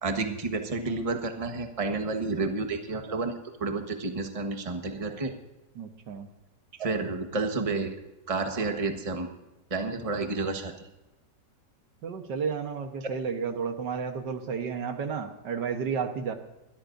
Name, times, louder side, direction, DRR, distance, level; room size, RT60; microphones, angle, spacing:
voice 1, 0.0-3.3 3.6-5.3 6.8-7.9 8.3-9.3 9.7-10.7, right 3 dB, 20° right, 5 dB, 1.2 m, -30 dB
voice 2, 5.8-6.3 12.0-16.3, right 6 dB, 75° right, 6 dB, 1.8 m, -32 dB
23.0 x 13.5 x 2.6 m, 0.96 s
omnidirectional pair, 1.9 m